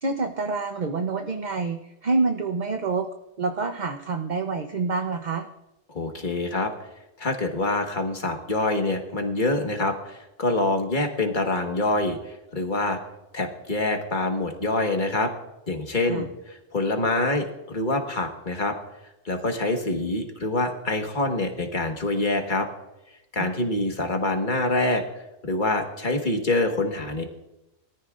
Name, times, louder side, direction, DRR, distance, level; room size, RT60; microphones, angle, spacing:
voice 1, 0.0-3.1 3.4-5.5 16.0-16.3 23.4-23.5, right 4 dB, 45° right, 5 dB, 0.8 m, -27 dB
voice 2, 5.9-6.7 7.2-13.0 13.3-15.3 15.7-18.7 19.2-22.7 23.3-25.0 25.4-27.2, left 2 dB, 40° left, 4 dB, 1.5 m, -25 dB
22.0 x 13.5 x 2.5 m, 0.97 s
omnidirectional pair, 1.3 m